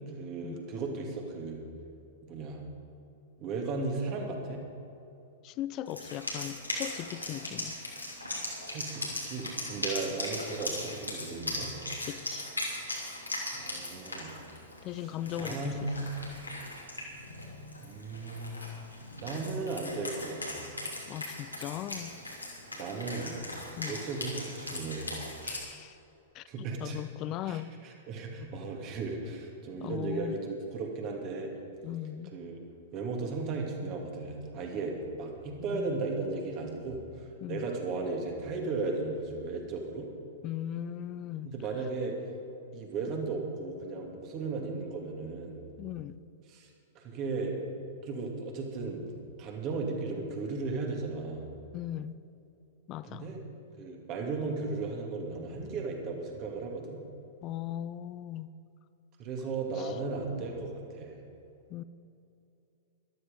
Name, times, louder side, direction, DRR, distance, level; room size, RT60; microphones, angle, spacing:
voice 1, 0.1-1.6 2.3-2.6 3.4-4.6 8.7-11.7 13.5-14.3 15.0-15.1 15.3-16.0 17.8-18.6 19.2-20.7 22.7-23.3 23.8-25.1 26.5-27.0 27.5-31.5 32.3-32.5 32.9-40.1 41.5-42.2 42.7-45.6 46.5-47.5 48.0-49.0 49.4-51.5 53.1-53.4 53.8-57.0 59.2-61.2, right 3 dB, 35° right, 2.5 m, -36 dB
voice 2, 5.4-7.8 12.1-12.5 14.8-15.9 21.1-22.2 23.8-24.0 25.4-26.0 26.3-27.8 29.8-30.4 31.8-32.4 35.6-36.0 37.4-37.7 40.4-41.5 45.8-46.2 51.7-52.2 52.9-53.3 57.4-58.5 59.8-59.9 61.7-61.8, left 12 dB, 35° left, 0.5 m, -38 dB
Wind instrument woodwind instrument, 5.9-25.6, left 1 dB, 85° left, 3.0 m, -39 dB
13.5 x 12.5 x 5.3 m
figure-of-eight pair, 100°, 0 cm